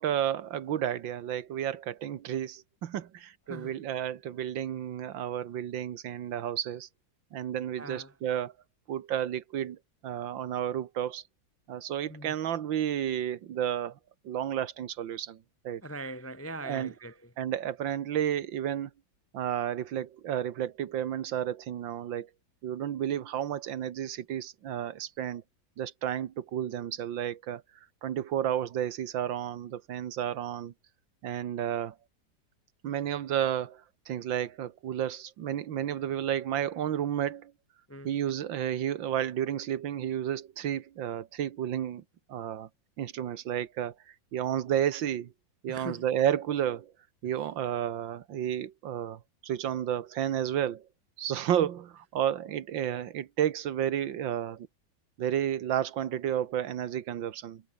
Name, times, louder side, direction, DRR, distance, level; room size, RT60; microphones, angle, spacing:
voice 1, 0.0-6.9 7.3-8.5 8.9-9.8 10.0-11.2 11.7-14.0 14.2-15.8 16.6-16.9 17.4-18.9 19.3-22.3 22.6-25.4 25.8-27.6 28.0-30.7 31.2-32.0 32.8-37.5 38.1-42.0 42.3-42.7 43.0-43.9 44.3-45.3 45.6-46.9 47.2-50.9 51.2-54.7 55.2-57.6, right 10 dB, 90° right, 1.9 m, -31 dB
voice 2, 7.8-8.1 12.1-12.3 15.8-17.3 37.9-38.1 45.7-46.1, right 2 dB, 15° left, 0.5 m, -41 dB
omnidirectional pair, 2.0 m